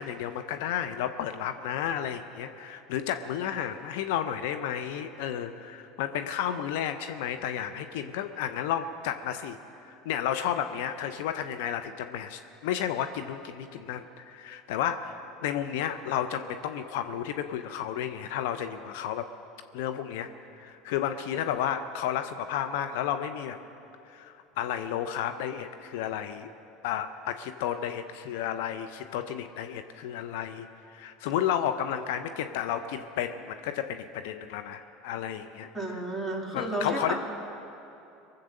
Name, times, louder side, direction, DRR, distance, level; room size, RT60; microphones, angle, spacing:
voice 1, 0.0-9.6 9.8-19.3 19.7-20.3 20.5-23.6 24.1-26.5 26.8-35.7 36.5-37.1, left 10 dB, 70° left, 8 dB, 0.6 m, -32 dB
voice 2, 35.7-37.1, right 1 dB, ahead, -1 dB, 2.9 m, -32 dB
22.5 x 7.9 x 6.5 m, 2.8 s
hypercardioid pair, 75°, 0 cm